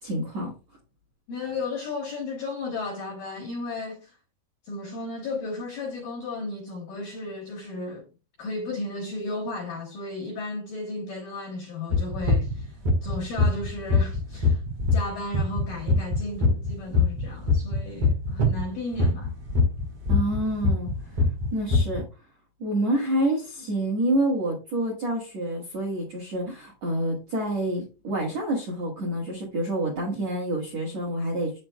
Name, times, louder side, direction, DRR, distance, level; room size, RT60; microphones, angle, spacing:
voice 1, 0.0-0.5 20.1-20.9 21.5-22.0 22.6-31.6, right 1 dB, 65° right, 1.6 m, -27 dB
voice 2, 1.3-4.2 4.6-8.1 8.4-14.6 14.9-19.4, left 2 dB, 80° left, 1.9 m, -34 dB
sound 1, 11.9-18.6 18.9-22.0, left 3 dB, 85° right, 1.3 m, -22 dB
7.8 x 7.3 x 2.2 m
omnidirectional pair, 5.7 m